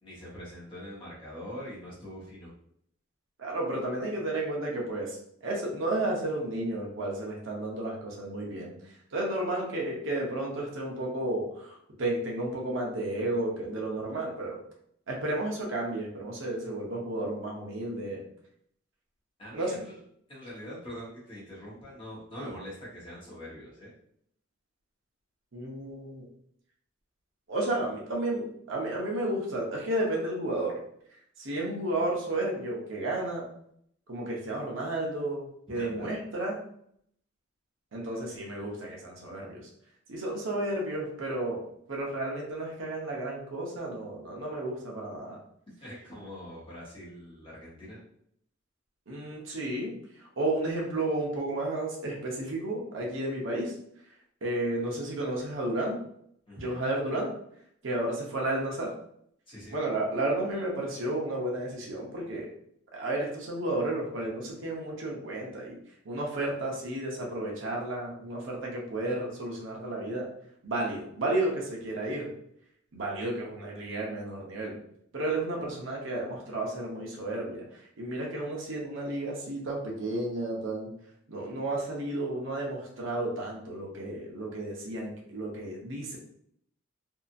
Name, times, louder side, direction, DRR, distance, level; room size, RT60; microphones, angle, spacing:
voice 1, 0.0-2.5 19.4-19.9 20.3-23.9 35.7-36.1 45.8-48.0 56.5-56.8 59.5-59.8, equal, 25° left, -7 dB, 1.0 m, -43 dB
voice 2, 3.4-5.2 5.4-8.8 9.1-14.6 15.1-18.2 19.5-19.8 25.5-26.2 27.5-30.8 31.4-33.5 34.1-36.6 37.9-39.6 40.1-41.6 41.9-45.4 49.1-53.7 54.4-56.0 56.6-57.3 57.8-58.9 59.7-62.5 62.9-65.8 66.0-70.3 70.6-72.3 72.9-74.8 75.1-80.9 81.3-86.2, right 1 dB, 70° right, -2 dB, 0.8 m, -32 dB
2.7 x 2.4 x 2.6 m, 0.69 s
head